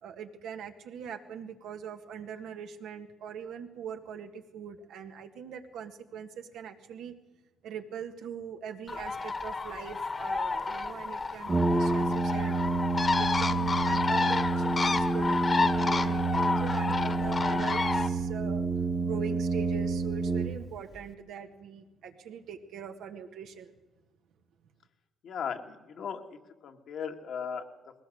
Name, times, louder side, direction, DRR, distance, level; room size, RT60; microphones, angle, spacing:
voice 1, 0.0-7.1 7.6-12.6 13.2-18.7 19.0-23.7, right 7 dB, 85° right, 5 dB, 1.8 m, -42 dB
Bird, 8.9-18.1, left 4 dB, 35° left, 1.5 m, -30 dB
Brass instrument, 11.5-21.0, right 3 dB, 20° right, 1.3 m, -29 dB
voice 2, 25.2-26.2 26.6-27.7, left 7 dB, 65° left, 4 dB, 1.9 m, -36 dB
20.5 x 17.5 x 7.9 m, 1.2 s
cardioid pair, 90°, 0 cm